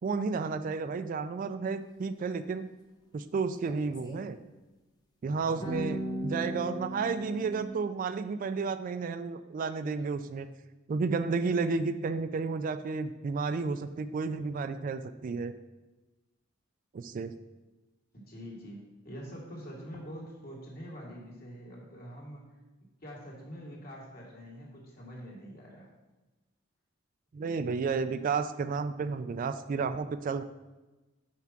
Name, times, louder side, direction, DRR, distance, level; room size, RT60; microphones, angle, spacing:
voice 1, 0.0-2.7 3.1-4.4 5.2-10.5 10.9-15.5 16.9-17.3 27.3-30.4, right 4 dB, 45° right, 11 dB, 0.3 m, -32 dB
sound 1, 3.7-4.2 5.6-7.7, right 1 dB, 20° left, 0.8 m, -36 dB
voice 2, 5.4-5.7 18.1-22.5 23.0-25.9, equal, 50° left, -3 dB, 2.0 m, -45 dB
5.9 x 4.6 x 5.9 m, 1.1 s
head